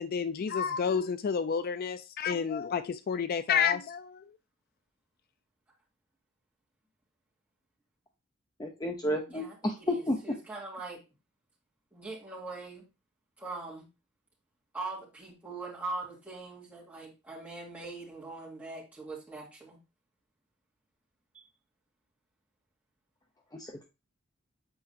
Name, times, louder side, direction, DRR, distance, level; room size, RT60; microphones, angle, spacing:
voice 1, 0.0-4.3, left 6 dB, 50° left, 0.3 m, -30 dB
voice 2, 8.6-10.2, left 1 dB, 20° left, 0.7 m, -31 dB
voice 3, 9.1-11.0 11.9-12.9 13.4-13.9 14.7-19.8 21.3-21.4, right 3 dB, 10° right, 2.7 m, -42 dB
7.7 x 4.6 x 2.8 m
head